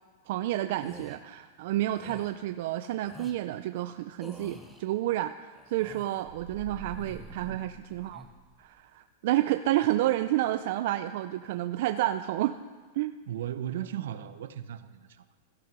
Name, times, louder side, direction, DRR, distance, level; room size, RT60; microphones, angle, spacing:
voice 1, 0.3-5.3 5.7-8.2 8.6-12.5 12.9-13.1, right 14 dB, 55° right, 10 dB, 0.5 m, -30 dB
sound 1, 0.7-1.2 1.9-2.3 3.0-3.4 4.2-4.8 5.5-6.2 6.8-7.5 7.9-8.3, equal, ahead, 1.0 m, -48 dB
sound 2, 6.2-8.7, right 3 dB, 30° right, 1.8 m, -46 dB
voice 2, 13.3-15.2, right 11 dB, 75° right, 12 dB, 1.0 m, -36 dB
16.5 x 12.5 x 6.1 m, 1.4 s
supercardioid pair, 165°, 0 cm